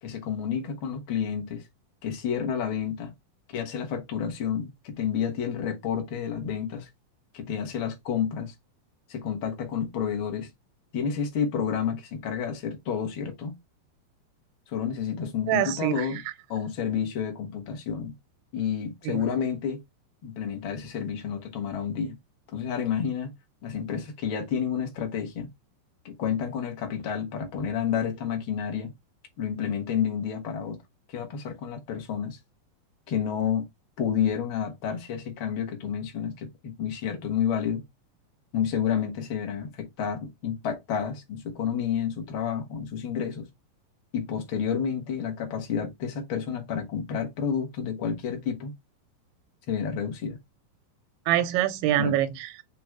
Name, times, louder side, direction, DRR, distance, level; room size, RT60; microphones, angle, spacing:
voice 1, 0.0-1.6 2.0-3.1 3.5-6.9 7.3-8.5 9.1-10.5 10.9-13.5 14.7-16.2 16.5-18.1 18.5-19.8 20.2-22.2 22.5-23.3 23.6-25.5 26.0-28.9 29.4-30.8 31.1-32.4 33.1-33.7 34.0-37.8 38.5-43.5 44.1-48.7 49.7-50.4 52.0-52.2, left 7 dB, 50° left, 1.6 m, -30 dB
voice 2, 15.5-16.1 19.1-19.2 51.3-52.5, right 12 dB, 90° right, 2.7 m, -25 dB
6.8 x 3.0 x 4.6 m
omnidirectional pair, 4.3 m